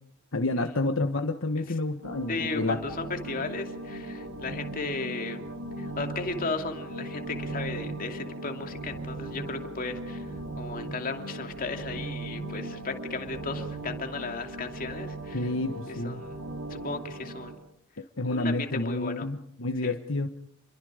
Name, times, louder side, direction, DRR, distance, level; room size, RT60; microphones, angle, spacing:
voice 1, 0.3-2.8 15.3-16.2 18.2-20.3, left 2 dB, 65° left, 6 dB, 1.4 m, -29 dB
sound 1, 2.0-17.5, right 1 dB, 75° right, 4.3 m, -38 dB
voice 2, 2.3-5.4 5.8-10.3 10.6-15.5 16.0-16.4 16.7-17.5 18.2-19.3 19.8-19.9, left 3 dB, 45° left, 5 dB, 2.6 m, -35 dB
29.0 x 23.0 x 5.1 m, 0.68 s
head